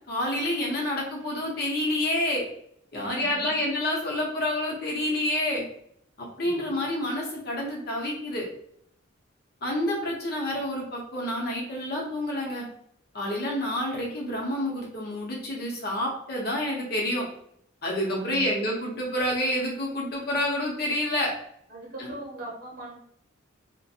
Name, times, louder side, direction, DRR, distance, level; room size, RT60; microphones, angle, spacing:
voice 1, 0.1-2.4 2.9-5.6 6.4-8.4 9.6-12.6 13.1-17.3 17.8-21.3 22.0-22.1, left 1 dB, 50° left, -2 dB, 0.8 m, -28 dB
voice 2, 2.9-3.5 6.4-6.5 18.1-18.5 21.7-22.9, right 2 dB, 45° right, -4 dB, 0.8 m, -39 dB
2.5 x 2.1 x 2.7 m, 0.70 s
head